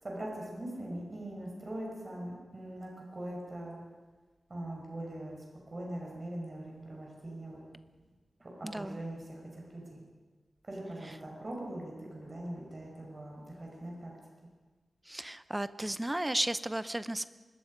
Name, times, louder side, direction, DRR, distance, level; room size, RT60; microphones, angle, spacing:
voice 1, 0.0-3.8 4.5-7.6 8.4-10.1 10.6-14.1, right 1 dB, 35° right, -1 dB, 5.2 m, -41 dB
voice 2, 8.6-9.0 15.1-17.3, right 1 dB, 15° right, 13 dB, 0.7 m, -34 dB
25.0 x 21.0 x 5.3 m, 1.3 s
wide cardioid pair, 135°, 0 cm